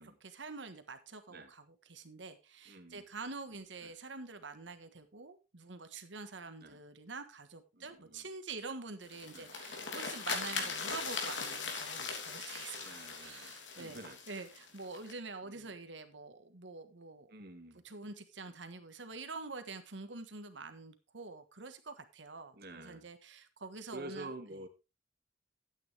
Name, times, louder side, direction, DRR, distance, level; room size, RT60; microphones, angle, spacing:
voice 1, 0.0-14.0 14.3-17.3 17.8-24.3, right 3 dB, 80° right, 9 dB, 1.5 m, -46 dB
voice 2, 2.7-3.0 3.8-3.9 6.6-6.8 7.7-8.3 9.3-9.5 10.5-10.8 12.8-14.2 15.5-15.8 17.3-17.8 22.5-23.1 23.9-24.7, right 2 dB, 55° right, 6 dB, 2.0 m, -49 dB
sound 1, 9.0-15.1, left 5 dB, 85° left, 3.1 m, -40 dB
12.5 x 9.1 x 3.5 m, 0.28 s
head